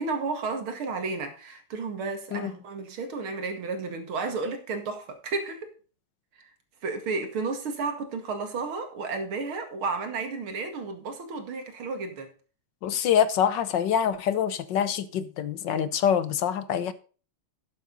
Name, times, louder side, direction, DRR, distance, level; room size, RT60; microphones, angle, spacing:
voice 1, 0.0-5.7 6.4-6.5 6.8-12.3, right 4 dB, 85° right, 2.7 m, -32 dB
voice 2, 12.8-16.9, left 8 dB, 65° left, 1.4 m, -25 dB
12.0 x 8.1 x 3.9 m
omnidirectional pair, 2.3 m